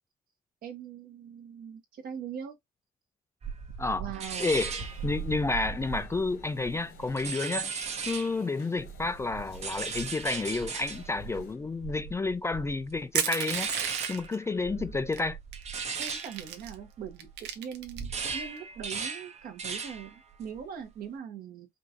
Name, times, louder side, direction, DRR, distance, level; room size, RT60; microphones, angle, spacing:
voice 1, 0.6-2.5 4.0-4.6 16.0-21.7, right 8 dB, 60° right, 1.4 m, -41 dB
sound 1, 3.4-8.4 8.8-17.5 17.8-20.1 20.4-20.8, right 5 dB, 40° right, 0.9 m, -37 dB
voice 2, 4.4-4.7 5.0-7.7 8.1-13.7 14.1-15.4, left 3 dB, 15° left, 0.3 m, -30 dB
sound 2, 4.6-11.6, left 7 dB, 80° left, 1.5 m, -55 dB
Crushing, 13.1-14.3 15.1-15.2 15.5-16.7 17.2-18.3, right 9 dB, 90° right, 0.9 m, -33 dB
5.1 x 2.6 x 2.9 m
cardioid pair, 110°, 17 cm